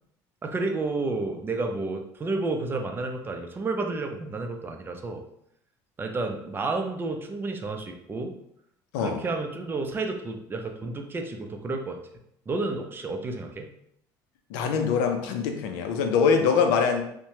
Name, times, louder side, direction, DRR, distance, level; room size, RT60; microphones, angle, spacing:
voice 1, 0.4-5.2 6.0-8.3 9.0-12.0 12.5-13.7, right 3 dB, 25° right, 4 dB, 0.4 m, -31 dB
voice 2, 14.5-17.0, left 6 dB, 90° left, 5 dB, 0.4 m, -23 dB
2.9 x 2.1 x 2.7 m, 0.74 s
supercardioid pair, 105°, 9 cm